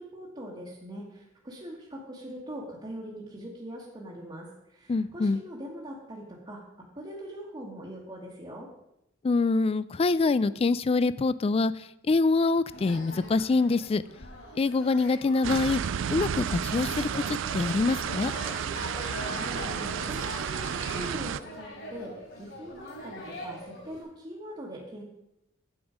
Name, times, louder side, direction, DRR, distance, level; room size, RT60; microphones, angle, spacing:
voice 1, 0.0-6.6 6.9-8.7 18.8-25.0, equal, 25° right, -5 dB, 1.4 m, -42 dB
voice 2, 4.9-5.4 9.2-11.7 12.1-14.0 14.6-15.8 16.1-18.3, left 3 dB, 30° left, 17 dB, 0.3 m, -25 dB
sound 1, 12.7-24.0, left 1 dB, 55° left, 4.0 m, -42 dB
sound 2, 15.4-21.4, right 8 dB, 65° right, 0.4 m, -32 dB
8.9 x 7.9 x 5.0 m, 0.84 s
head